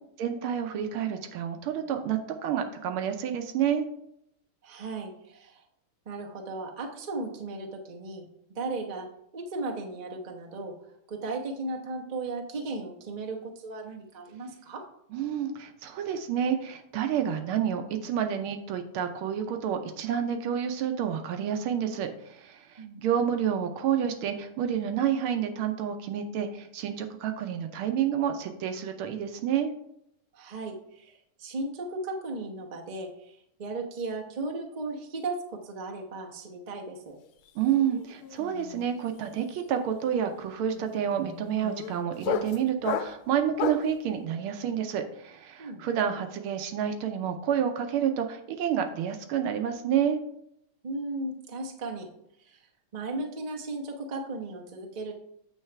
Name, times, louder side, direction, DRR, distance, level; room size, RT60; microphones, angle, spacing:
voice 1, 0.2-3.9 15.1-29.7 37.5-50.2, right 9 dB, 85° right, 6 dB, 1.6 m, -29 dB
voice 2, 4.6-5.6 6.1-9.1 9.3-10.7 11.1-14.8 22.8-23.1 30.3-37.2 45.6-45.8 50.8-52.1 52.4-52.6 52.9-55.1, right 2 dB, 40° right, 1 dB, 0.6 m, -36 dB
sound 1, 37.2-37.5 37.7-44.0, left 7 dB, 90° left, 1.5 m, -35 dB
8.7 x 3.3 x 5.8 m, 0.76 s
omnidirectional pair, 2.3 m